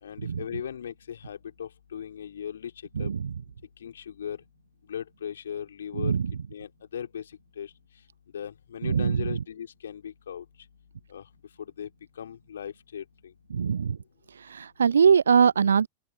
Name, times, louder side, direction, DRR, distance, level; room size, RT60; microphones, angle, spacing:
voice 1, 0.0-2.7 3.0-3.1 3.8-4.4 4.9-6.1 6.5-7.2 7.6-7.7 8.3-10.4 11.1-11.2 11.8-11.9 12.2-13.0, left 8 dB, 65° left, 3.2 m, -37 dB
voice 2, 3.0-3.3 6.0-6.3 8.8-9.2 13.5-14.0 14.5-15.9, right 6 dB, 70° right, 0.6 m, -22 dB
open air
figure-of-eight pair, 90°, 0 cm